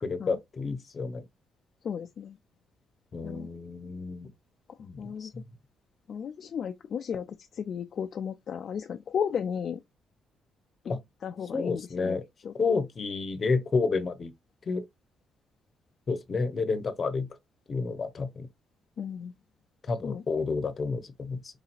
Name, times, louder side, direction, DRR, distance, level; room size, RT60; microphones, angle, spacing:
voice 1, 0.0-1.2 3.1-4.3 4.8-5.4 10.9-11.0 11.5-12.2 12.5-14.3 14.7-14.8 16.1-17.3 17.7-18.5 19.9-21.4, left 4 dB, 40° left, 0.8 m, -30 dB
voice 2, 1.8-2.4 3.2-3.5 5.0-5.3 6.1-7.3 7.5-9.8 11.2-12.2 12.4-12.5 19.0-19.3 20.0-20.2, left 7 dB, 60° left, 0.3 m, -34 dB
4.8 x 2.8 x 2.4 m
cardioid pair, 90°, 0 cm